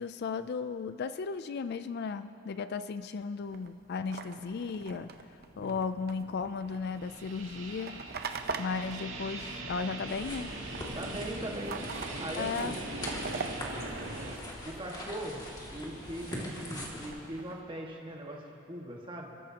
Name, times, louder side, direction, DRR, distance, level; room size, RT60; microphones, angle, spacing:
voice 1, 0.0-5.1 5.6-8.0 8.6-10.5 12.4-12.7, left 5 dB, 50° left, 11 dB, 0.4 m, -35 dB
sound 1, 3.5-10.1 10.3-14.9 15.4-17.6, right 4 dB, 50° right, 0.7 m, -44 dB
sound 2, 4.7-14.4, right 2 dB, 65° right, 2.4 m, -41 dB
sound 3, 10.1-17.1, left 1 dB, 20° left, 2.2 m, -42 dB
voice 2, 10.9-12.8 14.6-19.3, right 1 dB, 25° right, -1 dB, 1.7 m, -41 dB
29.0 x 13.5 x 2.9 m, 2.7 s
head